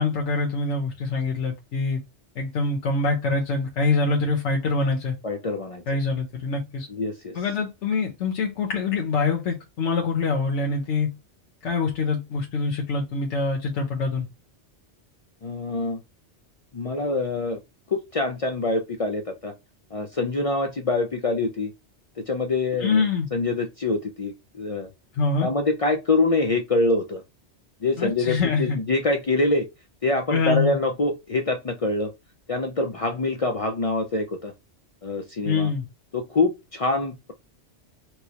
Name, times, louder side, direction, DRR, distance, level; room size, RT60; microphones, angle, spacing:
voice 1, 0.0-2.0 2.4-5.2 5.9-6.9 7.3-11.1 11.6-14.3 22.8-23.3 25.1-25.5 28.0-28.8 30.3-30.8 35.4-35.9, left 4 dB, 85° left, 1.1 m, -25 dB
voice 2, 5.2-5.8 6.9-7.4 15.4-16.0 16.7-17.6 17.9-19.5 19.9-21.7 22.3-23.0 23.3-24.9 25.4-27.2 27.8-29.7 30.0-32.1 32.5-34.5 35.0-35.7 36.1-37.3, left 2 dB, 55° left, 0.4 m, -25 dB
4.5 x 2.0 x 2.8 m
omnidirectional pair, 1.2 m